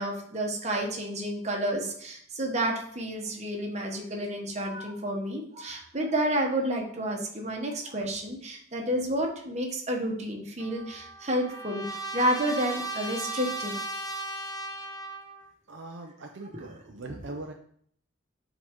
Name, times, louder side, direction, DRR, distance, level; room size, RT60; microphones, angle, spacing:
voice 1, 0.0-13.8 16.5-16.7, right 1 dB, 35° right, 0 dB, 1.3 m, -30 dB
Trumpet, 10.6-15.5, right 2 dB, 20° left, 0.7 m, -37 dB
voice 2, 15.7-17.5, right 2 dB, 65° right, 3 dB, 0.6 m, -41 dB
7.5 x 4.0 x 3.8 m, 0.62 s
head